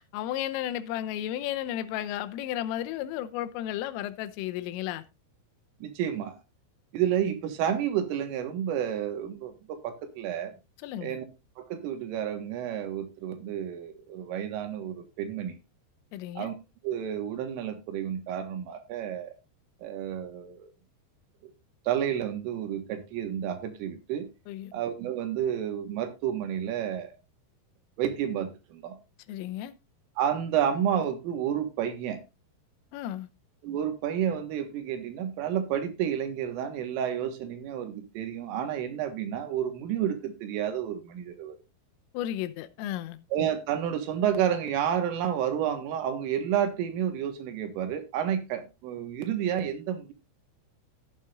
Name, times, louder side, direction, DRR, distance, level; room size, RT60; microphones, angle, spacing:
voice 1, 0.0-5.0 10.8-11.2 16.1-16.5 24.5-24.7 29.3-29.7 32.9-33.3 42.1-43.2, left 12 dB, 85° left, 3.4 m, -33 dB
voice 2, 5.8-6.4 6.9-10.6 11.0-11.3 11.6-15.6 16.4-16.5 16.8-19.3 19.8-20.7 21.9-24.3 24.7-27.1 28.0-29.0 30.2-32.2 33.6-41.6 43.3-50.1, right 9 dB, 90° right, 4.1 m, -30 dB
14.5 x 9.3 x 2.6 m
omnidirectional pair, 5.7 m